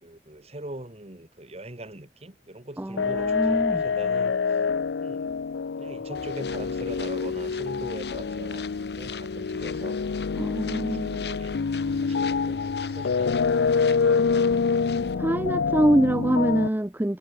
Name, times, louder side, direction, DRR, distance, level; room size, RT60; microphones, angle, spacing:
voice 1, 0.0-4.6 5.0-5.3 5.8-8.7 9.0-10.0 10.6-11.6 12.0-13.5 13.8-14.5, right 1 dB, 35° right, 2.2 m, -41 dB
voice 2, 2.8-3.8 10.4-11.1 15.1-17.2, right 1 dB, 10° right, 0.6 m, -24 dB
sound 1, 3.0-16.7, left 5 dB, 85° left, 0.5 m, -26 dB
sound 2, 6.1-15.2, left 5 dB, 65° left, 6.7 m, -42 dB
head